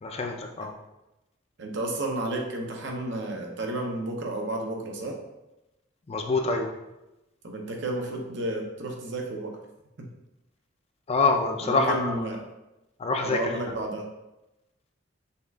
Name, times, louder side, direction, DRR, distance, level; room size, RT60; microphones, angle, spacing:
voice 1, 0.0-0.7 6.1-6.7 11.1-12.2 13.0-13.4, left 3 dB, 30° left, 3 dB, 0.4 m, -25 dB
voice 2, 1.6-5.2 7.4-9.6 10.0-10.1 11.6-12.4 13.2-14.1, right 1 dB, 65° right, 1 dB, 0.7 m, -32 dB
5.4 x 2.4 x 3.4 m, 0.96 s
head